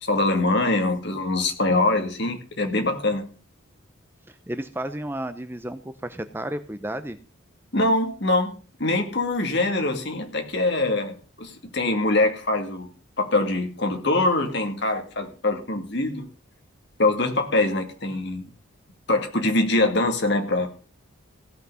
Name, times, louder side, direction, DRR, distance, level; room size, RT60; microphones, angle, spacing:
voice 1, 0.0-3.2 7.7-8.5 8.8-12.9 13.2-16.3 17.0-18.4 19.1-20.7, left 2 dB, 55° left, 5 dB, 2.3 m, -23 dB
voice 2, 4.3-7.2, right 1 dB, 10° right, 10 dB, 0.6 m, -32 dB
16.5 x 5.8 x 6.9 m, 0.37 s
head